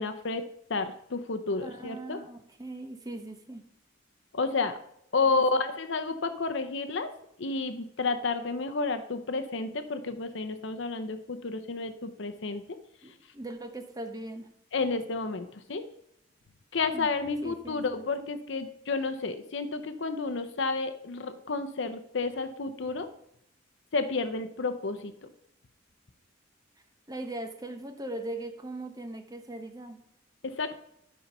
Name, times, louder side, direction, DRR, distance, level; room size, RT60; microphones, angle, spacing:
voice 1, 0.0-2.2 4.3-4.8 5.1-7.1 7.4-12.8 14.7-15.8 16.7-23.1 23.9-25.3 30.4-30.8, left 3 dB, 65° left, 9 dB, 0.7 m, -31 dB
voice 2, 1.6-3.6 5.2-5.4 13.0-14.5 16.9-17.1 17.4-17.8 27.1-30.0, right 2 dB, 20° right, 6 dB, 0.9 m, -40 dB
11.5 x 5.5 x 5.4 m, 0.75 s
head